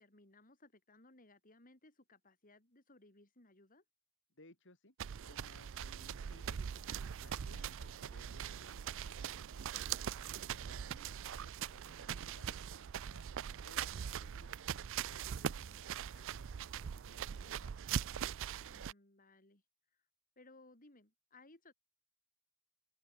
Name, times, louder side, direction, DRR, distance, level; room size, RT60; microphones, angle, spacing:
voice 1, 0.0-3.8 15.3-15.8 18.7-19.6 20.4-21.7, left 2 dB, 40° left, 3.7 m, -63 dB
voice 2, 4.4-5.0 5.2-6.8 7.2-13.2 13.6-14.6 15.1-17.7, left 2 dB, 55° left, 7.1 m, -63 dB
sound 1, 5.0-18.9, right 8 dB, 60° right, 0.4 m, -42 dB
head